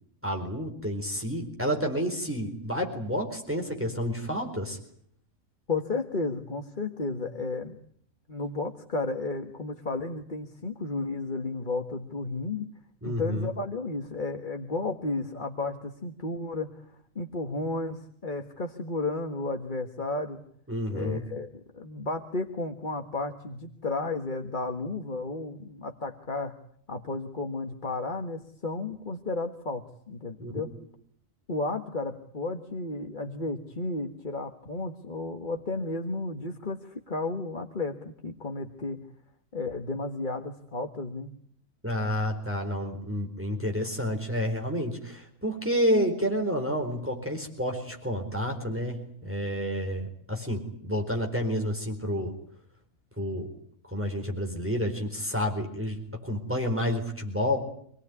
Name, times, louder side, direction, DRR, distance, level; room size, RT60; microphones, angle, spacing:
voice 1, 0.2-4.8 13.0-13.5 20.7-21.2 30.4-30.5 41.8-52.3 53.2-53.5 53.9-57.6, equal, 10° right, 2 dB, 4.4 m, -30 dB
voice 2, 5.7-7.8 8.3-12.7 13.0-20.4 20.9-26.6 26.9-30.7 31.5-39.0 39.5-41.3, left 3 dB, 35° left, 4 dB, 1.8 m, -33 dB
27.5 x 19.0 x 9.8 m, 0.65 s
omnidirectional pair, 1.4 m